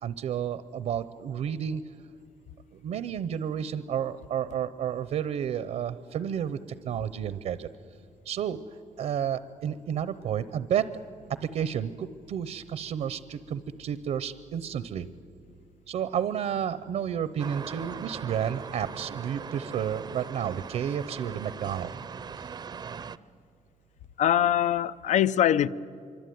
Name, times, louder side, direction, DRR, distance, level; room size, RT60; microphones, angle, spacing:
voice 1, 0.0-1.9 2.7-7.7 8.2-10.9 11.4-15.1 15.9-21.9, right 9 dB, 70° right, 14 dB, 0.8 m, -31 dB
sound 1, 17.4-23.2, right 6 dB, 35° right, 0.6 m, -40 dB
voice 2, 24.2-25.7, left 11 dB, 70° left, 16 dB, 0.6 m, -23 dB
25.0 x 24.5 x 9.4 m, 2.4 s
cardioid pair, 165°, 13 cm